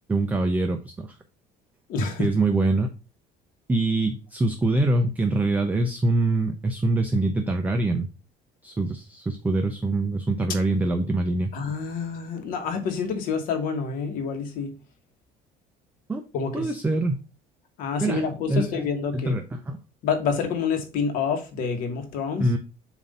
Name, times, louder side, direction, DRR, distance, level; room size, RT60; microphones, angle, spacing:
voice 1, 0.1-0.9 2.2-2.9 3.7-8.1 8.6-11.5 16.1-16.2 16.5-17.2 18.0-18.9 19.1-19.8 22.4-22.6, right 2 dB, 10° right, 0.4 m, -24 dB
voice 2, 1.9-2.3 11.5-14.7 16.3-16.7 17.8-19.4 20.0-22.4, left 5 dB, 60° left, 1.2 m, -27 dB
7.2 x 2.6 x 5.2 m
cardioid pair, 170°, 16 cm